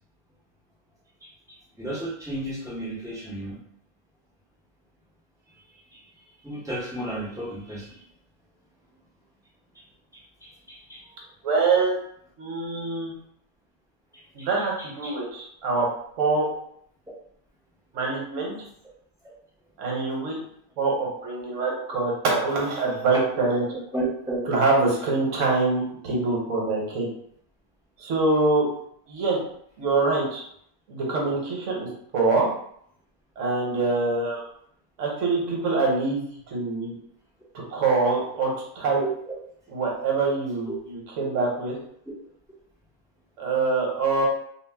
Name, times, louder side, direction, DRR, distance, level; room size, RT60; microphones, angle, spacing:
voice 1, 1.2-3.6 5.9-6.0 6.4-8.0 9.7-9.8 10.1-11.1 14.1-15.2 19.2-19.3 21.7-21.8 23.3-23.4 23.7-24.5 39.0-39.1 40.7-40.8 41.3-41.4, right 1 dB, 5° right, -7 dB, 0.3 m, -34 dB
voice 2, 11.4-12.0 12.4-13.1 14.3-15.9 16.2-16.5 17.9-18.5 19.8-20.4 20.8-23.6 24.5-27.1 28.0-28.6 29.1-29.4 29.8-30.4 30.9-31.9 32.1-32.5 33.4-34.4 35.0-36.9 37.7-39.0 39.7-41.7 43.4-44.2, right 3 dB, 60° right, -2 dB, 1.1 m, -24 dB
2.6 x 2.1 x 3.3 m, 0.68 s
omnidirectional pair, 1.5 m